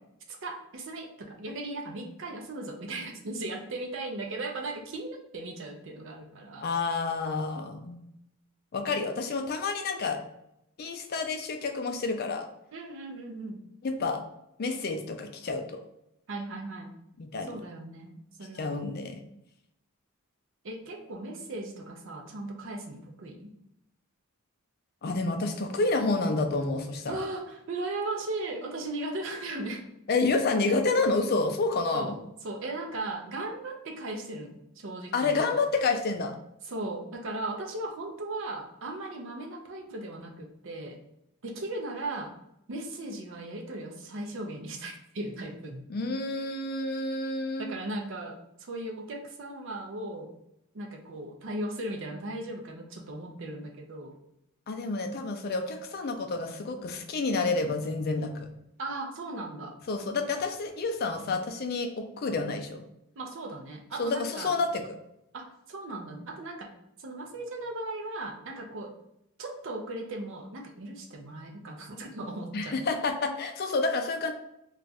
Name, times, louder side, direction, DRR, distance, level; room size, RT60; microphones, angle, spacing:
voice 1, 0.3-6.7 8.8-9.0 12.7-13.6 16.3-16.9 17.4-18.9 20.6-23.5 27.1-29.9 31.9-32.2 32.4-35.6 36.7-41.0 41.4-42.3 42.7-45.8 47.6-50.3 50.7-54.1 58.8-59.8 63.2-64.5 65.3-69.0 69.4-72.8, right 2 dB, 60° right, 2 dB, 0.5 m, -37 dB
voice 2, 6.6-8.0 8.7-10.2 10.8-12.5 13.8-14.2 14.6-15.8 17.2-17.6 18.5-19.3 25.0-27.2 30.1-32.1 35.1-36.4 45.9-47.7 54.7-58.5 59.9-62.8 64.0-64.8 72.5-74.3, left 3 dB, 45° left, 5 dB, 0.4 m, -29 dB
2.4 x 2.3 x 4.0 m, 0.81 s
head